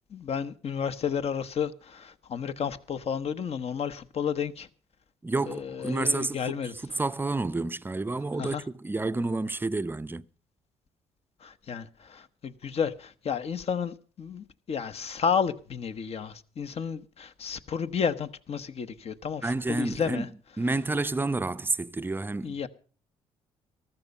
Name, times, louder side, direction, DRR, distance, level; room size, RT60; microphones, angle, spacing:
voice 1, 0.1-4.7 5.5-6.7 8.4-8.6 11.4-20.3 22.4-22.7, left 7 dB, 50° left, 1.1 m, -32 dB
voice 2, 5.2-10.3 19.4-20.3 20.6-22.6, right 2 dB, 15° right, 0.6 m, -30 dB
14.0 x 13.0 x 5.4 m
supercardioid pair, 70°, 13 cm